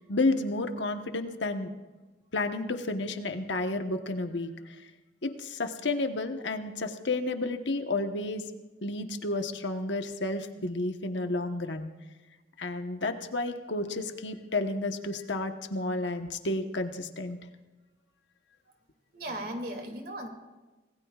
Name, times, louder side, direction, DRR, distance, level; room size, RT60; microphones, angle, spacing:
voice 1, 0.1-1.7 2.3-4.8 5.2-8.4 8.8-11.9 12.6-17.4, left 2 dB, 70° left, 6 dB, 1.2 m, -31 dB
voice 2, 19.1-20.3, right 1 dB, 50° right, 2 dB, 2.6 m, -36 dB
26.0 x 19.0 x 2.4 m, 1.2 s
head